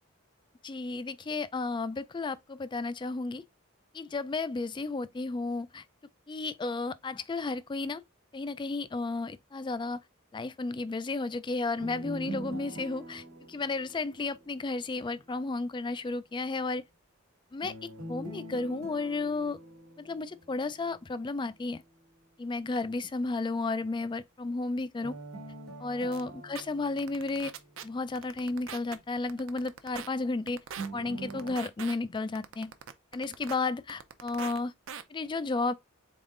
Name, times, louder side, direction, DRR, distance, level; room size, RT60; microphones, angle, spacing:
voice 1, 0.6-3.4 3.9-5.8 6.3-8.0 8.3-10.0 10.3-16.8 17.5-17.7 18.1-19.6 20.0-21.8 22.4-25.1 25.8-27.5 27.8-30.6 30.9-32.7 33.1-34.7 35.1-35.7, left 3 dB, 20° left, 0.3 m, -33 dB
sound 1, 11.8-14.9 17.6-20.9 25.0-28.1 30.8-31.6, right 2 dB, 85° right, 1.3 m, -43 dB
sound 2, 26.1-26.2 26.6-26.7 27.0-27.8 28.2-29.0 29.3-30.1 30.5-30.9 31.3-32.0 32.4-33.6 33.9-34.6 34.9-35.0, right 8 dB, 65° right, 0.6 m, -41 dB
3.9 x 3.6 x 3.7 m
head